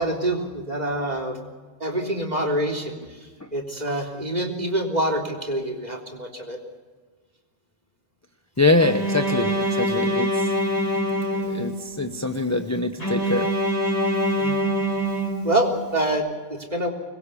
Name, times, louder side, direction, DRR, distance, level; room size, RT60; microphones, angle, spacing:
voice 1, 0.0-1.4 1.8-6.6 14.4-14.8 15.4-16.9, right 1 dB, 30° right, 4 dB, 3.8 m, -26 dB
voice 2, 8.6-10.5 11.2-13.5, left 2 dB, 15° left, 7 dB, 0.9 m, -24 dB
Bowed string instrument, 8.8-12.0 13.0-15.9, equal, 55° left, 4.6 m, -24 dB
25.5 x 21.5 x 7.0 m, 1.4 s
omnidirectional pair, 1.3 m